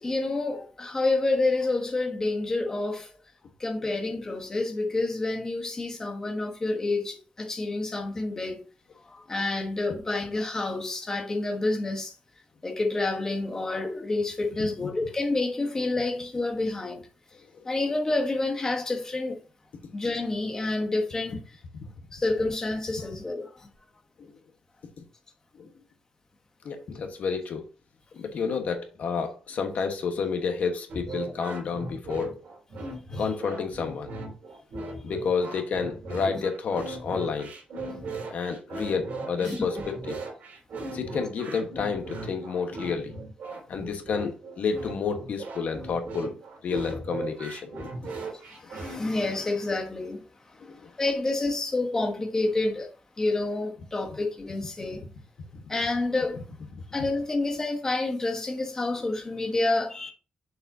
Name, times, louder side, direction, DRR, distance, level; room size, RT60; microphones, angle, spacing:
voice 1, 0.0-3.1 3.6-8.7 9.1-12.1 12.6-17.0 17.6-19.4 19.9-21.6 22.1-23.7 33.1-33.2 36.3-36.4 39.4-39.6 48.0-52.9 53.2-55.1 55.7-56.5 56.9-60.1, left 2 dB, 20° left, 1.1 m, -29 dB
voice 2, 26.6-27.6 28.1-32.4 33.2-34.1 35.0-37.5 38.3-39.8 40.1-40.2 40.9-43.1 43.7-46.3 46.6-47.7 50.6-50.8, left 5 dB, 60° left, 1.3 m, -30 dB
sound 1, 30.9-49.0, right 2 dB, 65° right, 3.2 m, -37 dB
7.0 x 6.8 x 2.7 m
wide cardioid pair, 180°, 3 cm